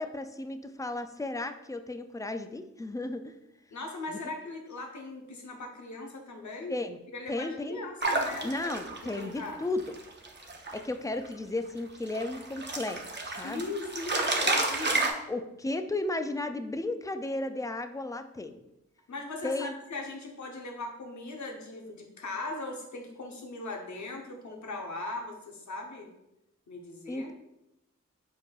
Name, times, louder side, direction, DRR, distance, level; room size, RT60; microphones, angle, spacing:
voice 1, 0.0-3.3 4.1-4.2 6.7-7.0 7.3-7.8 8.4-9.8 10.7-13.0 13.2-13.6 15.3-18.6 19.4-19.7 27.1-27.3, left 2 dB, 10° left, 8 dB, 0.3 m, -34 dB
voice 2, 3.7-6.8 7.1-9.6 13.4-15.2 19.1-26.1 26.7-27.3, left 2 dB, 75° left, 2 dB, 0.9 m, -39 dB
sound 1, 8.0-10.8 11.1-11.3 11.8-15.1, right 2 dB, 40° right, 0.7 m, -31 dB
4.6 x 4.5 x 2.3 m, 0.88 s
wide cardioid pair, 65°, 29 cm